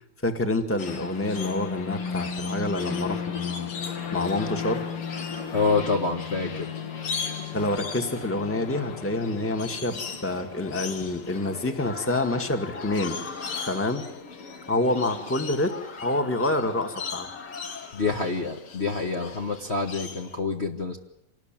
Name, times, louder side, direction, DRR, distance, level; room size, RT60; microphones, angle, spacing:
voice 1, 0.2-5.5 7.5-14.0 14.7-18.0, left 2 dB, 5° left, 6 dB, 1.8 m, -28 dB
sound 1, 0.8-20.4, left 6 dB, 80° left, 2.8 m, -35 dB
voice 2, 5.5-6.7 17.9-21.0, left 4 dB, 30° left, 0 dB, 1.7 m, -27 dB
27.0 x 19.5 x 9.1 m, 0.80 s
omnidirectional pair, 2.4 m